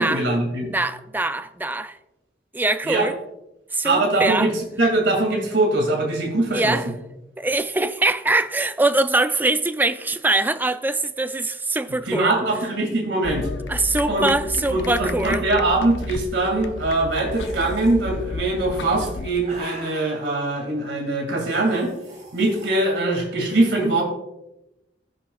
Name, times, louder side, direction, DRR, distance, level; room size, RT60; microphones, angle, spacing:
voice 1, 0.0-0.7 2.8-3.1 3.8-6.8 12.1-13.5 14.1-14.3 14.7-21.9 22.3-24.0, right 2 dB, 80° right, 2.2 m, -22 dB
voice 2, 0.7-2.0 2.5-3.2 3.7-4.5 6.5-6.9 7.4-12.3 13.7-15.4, right 2 dB, 10° right, 0.4 m, -23 dB
sound 1, 13.2-19.3, left 3 dB, 85° left, 0.6 m, -32 dB
sound 2, 17.3-17.9 18.9-20.3 21.4-22.7, right 2 dB, 45° right, 3.1 m, -42 dB
15.5 x 7.5 x 2.3 m
head